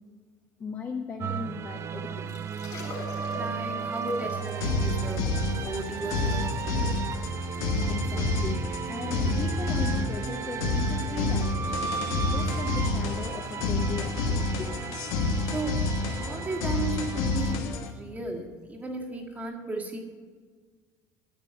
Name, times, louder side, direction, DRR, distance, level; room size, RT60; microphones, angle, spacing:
voice 1, 0.6-2.3 7.9-14.7, left 5 dB, 30° left, 1 dB, 1.0 m, -38 dB
sound 1, 1.2-17.6, right 6 dB, 35° right, 0.5 m, -34 dB
Liquid, 2.3-19.4, left 4 dB, 50° left, 3.2 m, -49 dB
voice 2, 3.3-7.0 15.5-15.8 16.2-20.0, right 2 dB, 20° right, -1 dB, 1.8 m, -35 dB
sound 2, 4.4-17.9, left 3 dB, 85° left, 1.3 m, -29 dB
10.0 x 6.8 x 9.2 m, 1.5 s
cardioid pair, 125°, 7 cm